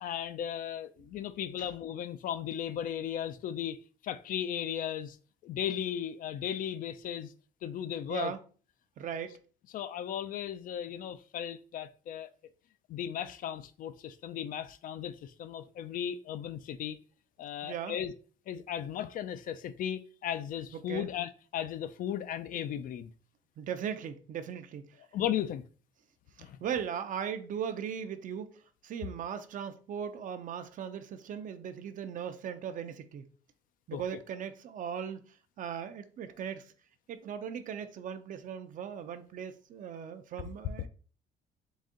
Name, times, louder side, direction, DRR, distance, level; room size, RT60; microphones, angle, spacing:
voice 1, 0.0-3.8 4.0-5.2 5.4-7.3 7.6-8.3 9.7-12.3 12.9-17.0 17.4-18.1 18.5-23.1 25.1-25.6 26.4-26.6 33.9-34.0, left 10 dB, 55° left, 0.4 m, -36 dB
voice 2, 9.0-9.4 17.6-18.0 20.7-21.1 23.6-24.9 26.6-28.5 28.8-33.3 33.9-35.2 35.6-36.7 37.1-40.9, right 8 dB, 50° right, 0.5 m, -38 dB
4.0 x 2.5 x 3.7 m
cardioid pair, 110°, 17 cm